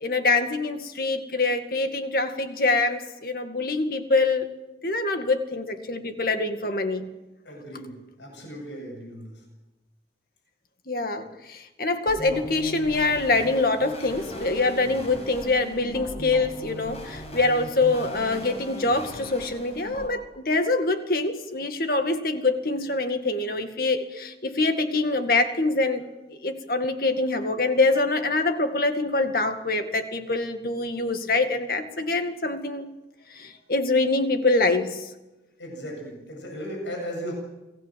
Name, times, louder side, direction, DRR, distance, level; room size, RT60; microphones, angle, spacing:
voice 1, 0.0-4.5 4.8-7.1 10.9-26.0 26.4-32.9 33.4-35.1, left 3 dB, 50° left, 7 dB, 2.1 m, -25 dB
voice 2, 7.5-9.3 35.6-37.3, equal, 85° left, 2 dB, 7.5 m, -36 dB
sound 1, 12.1-20.1, equal, 35° left, 5.7 m, -39 dB
29.0 x 19.0 x 7.7 m, 1.0 s
head